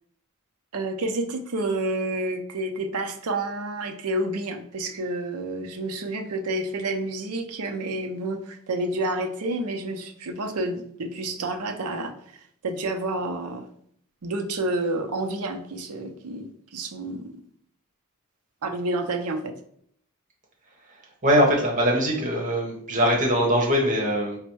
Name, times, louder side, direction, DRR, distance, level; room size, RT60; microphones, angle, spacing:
voice 1, 0.7-13.7 14.2-17.4 18.6-19.5, right 2 dB, 90° right, 5 dB, 0.6 m, -29 dB
voice 2, 20.9-24.4, equal, 35° right, -1 dB, 1.0 m, -22 dB
4.2 x 2.1 x 4.5 m, 0.67 s
head